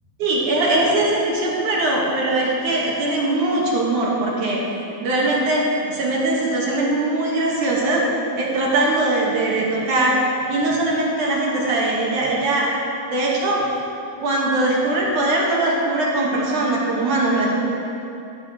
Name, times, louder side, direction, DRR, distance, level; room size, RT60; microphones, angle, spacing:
voice 1, 0.2-4.6 5.0-5.6 5.9-8.0 8.4-10.2 10.5-12.7 13.1-13.6 14.2-17.6, right 2 dB, 60° right, -4 dB, 2.4 m, -21 dB
14.5 x 14.0 x 3.1 m, 2.8 s
omnidirectional pair, 5.2 m